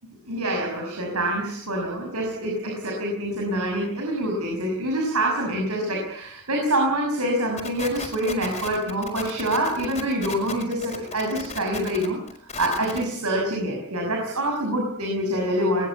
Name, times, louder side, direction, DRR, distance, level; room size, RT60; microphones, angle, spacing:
voice 1, 0.3-12.2 12.6-15.9, right 1 dB, 85° right, 1 dB, 6.2 m, -26 dB
sound 1, 7.6-13.1, left 4 dB, 30° left, 5.0 m, -35 dB
22.0 x 21.0 x 8.2 m, 0.69 s
head